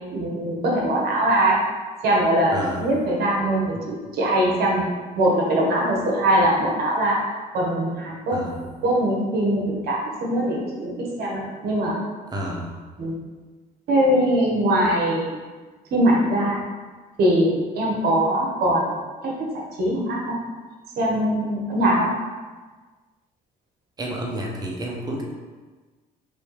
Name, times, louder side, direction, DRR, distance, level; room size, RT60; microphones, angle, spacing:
voice 1, 0.1-1.7 2.0-4.9 5.2-7.2 7.5-8.4 8.8-12.0 13.0-13.2 13.9-15.4 15.9-16.6 17.2-18.9 19.2-20.4 21.0-22.1, right 1 dB, 70° right, -2 dB, 1.1 m, -22 dB
voice 2, 2.5-2.9 8.3-8.6 12.3-12.7 24.0-25.2, right 1 dB, 25° right, -1 dB, 0.8 m, -30 dB
3.4 x 2.7 x 4.6 m, 1.4 s
cardioid pair, 110°, 17 cm